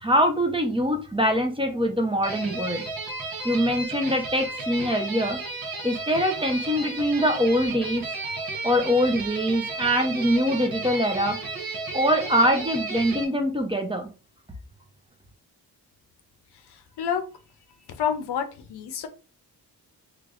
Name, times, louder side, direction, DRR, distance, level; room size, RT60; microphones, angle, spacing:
voice 1, 0.0-2.9 3.4-5.4 5.8-8.0 8.6-11.4 11.9-14.1, equal, 15° right, 4 dB, 0.7 m, -23 dB
sound 1, 2.2-13.2, right 3 dB, 60° right, 1.1 m, -33 dB
voice 2, 16.5-17.2 17.9-19.1, left 8 dB, 70° left, 8 dB, 0.7 m, -29 dB
3.3 x 3.1 x 2.5 m, 0.34 s
cardioid pair, 70°, 41 cm